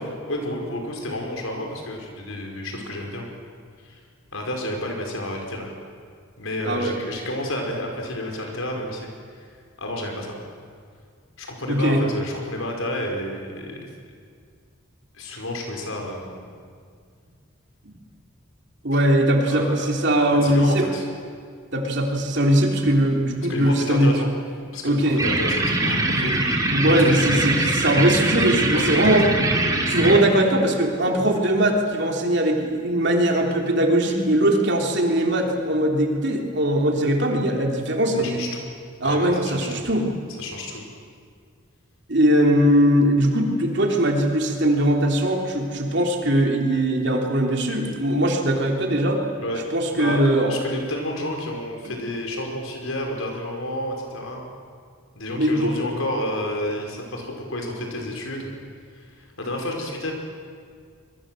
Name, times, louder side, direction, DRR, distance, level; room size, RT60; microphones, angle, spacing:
voice 1, 0.3-3.2 3.8-4.0 4.3-5.7 6.4-9.1 9.4-9.5 9.8-10.4 11.4-13.9 15.1-16.5 19.4-19.9 20.4-21.0 23.5-24.3 24.7-26.6 27.0-27.9 28.5-29.2 38.2-38.6 39.0-39.8 40.4-40.8 49.4-49.6 49.9-54.4 55.2-58.5 59.0-60.1, left 1 dB, 75° left, 1 dB, 5.3 m, -30 dB
voice 2, 6.6-7.0 11.7-12.0 18.8-20.8 21.7-24.1 24.8-25.2 26.2-26.3 26.7-29.3 29.9-38.5 39.0-40.1 42.1-49.2 49.7-50.5 51.8-51.9 55.4-55.7, right 1 dB, 55° right, 1 dB, 3.3 m, -20 dB
sound 1, 25.2-30.2, right 2 dB, 15° right, 2.6 m, -22 dB
26.0 x 22.0 x 7.8 m, 2.1 s
head